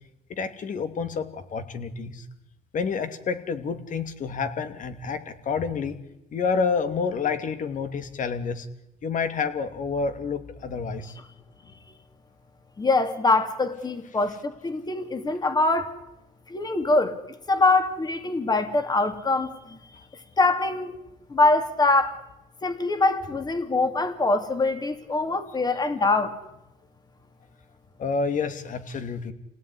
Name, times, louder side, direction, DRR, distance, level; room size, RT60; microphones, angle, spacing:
voice 1, 0.3-2.2 2.7-6.0 6.3-8.7 9.0-11.2 28.0-29.3, left 5 dB, 50° left, 2.7 m, -29 dB
voice 2, 12.8-15.9 16.5-17.2 17.5-19.8 20.4-20.9 21.3-22.2 22.6-26.4, left 3 dB, 25° left, 2.9 m, -23 dB
28.0 x 18.0 x 9.9 m
cardioid pair, 110°, 17 cm